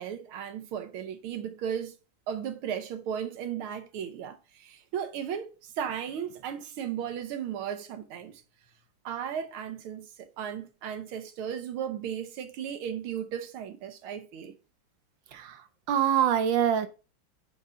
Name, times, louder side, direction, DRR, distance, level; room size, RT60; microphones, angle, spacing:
voice 1, 0.0-2.0 2.3-8.4 9.1-14.5, right 8 dB, 90° right, 1.8 m, -35 dB
voice 2, 15.3-16.9, right 9 dB, 70° right, 1.4 m, -25 dB
5.4 x 5.0 x 5.3 m
omnidirectional pair, 2.3 m